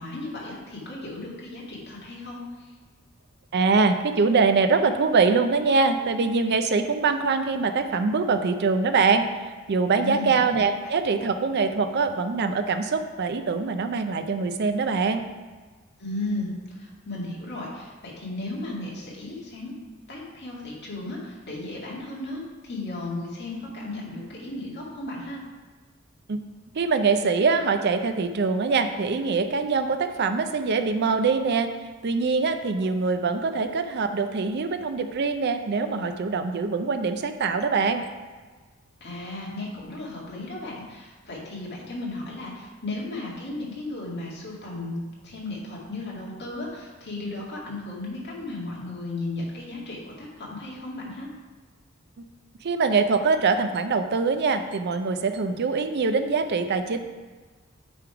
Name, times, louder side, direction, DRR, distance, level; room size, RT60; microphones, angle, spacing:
voice 1, 0.0-2.7 10.0-10.3 16.0-19.7 20.1-25.4 39.0-45.0 45.2-51.3, left 2 dB, 55° left, -4 dB, 2.0 m, -35 dB
voice 2, 3.5-9.3 9.7-15.2 26.3-26.4 26.7-31.7 32.0-38.0 52.2-52.3 52.6-57.0, right 4 dB, 55° right, 8 dB, 0.5 m, -23 dB
9.2 x 3.4 x 4.7 m, 1.4 s
head